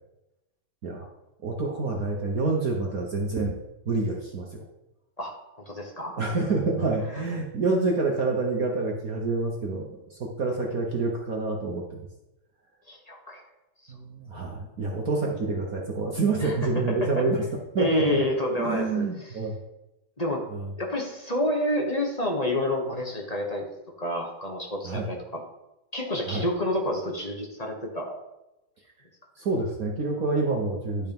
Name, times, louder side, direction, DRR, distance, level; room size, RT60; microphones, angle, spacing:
voice 1, 1.4-3.6 3.8-4.6 6.2-12.1 13.9-17.4 17.7-18.2 18.6-19.5 20.5-20.7 24.8-25.1 26.3-26.5 29.4-31.1, right 3 dB, 50° right, 0 dB, 1.3 m, -27 dB
voice 2, 5.2-6.1 12.9-13.4 16.4-16.6 17.0-17.1 17.8-19.0 20.2-20.4 20.8-23.6 24.0-25.4 25.9-28.2, left 1 dB, 25° left, -1 dB, 1.1 m, -29 dB
11.5 x 4.5 x 5.3 m, 0.95 s
omnidirectional pair, 2.3 m